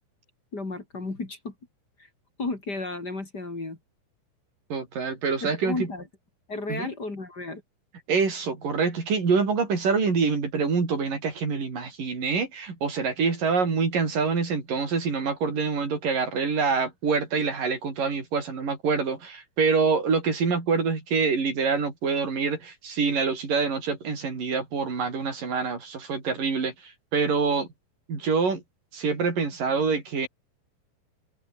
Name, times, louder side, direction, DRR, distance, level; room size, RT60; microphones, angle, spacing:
voice 1, 0.5-1.5 2.4-3.8 5.4-6.0 6.5-7.6, left 3 dB, 25° left, 3.6 m, -33 dB
voice 2, 4.7-5.9 6.7-6.9 8.1-27.7 28.1-28.6 28.9-30.3, right 5 dB, 50° right, 7.0 m, -26 dB
omnidirectional pair, 5.1 m